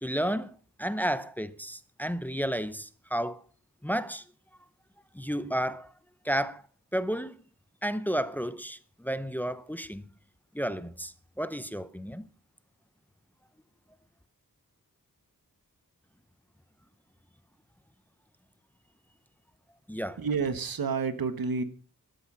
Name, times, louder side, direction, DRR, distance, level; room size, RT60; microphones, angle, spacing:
voice 1, 0.0-3.4 3.8-4.2 5.1-5.9 6.2-6.6 6.9-7.4 7.8-10.1 10.5-12.3 19.9-20.2, equal, 5° left, 0.7 m, -32 dB
voice 2, 20.2-21.6, right 5 dB, 85° right, 1.7 m, -29 dB
13.5 x 12.5 x 5.6 m
wide cardioid pair, 145°, 34 cm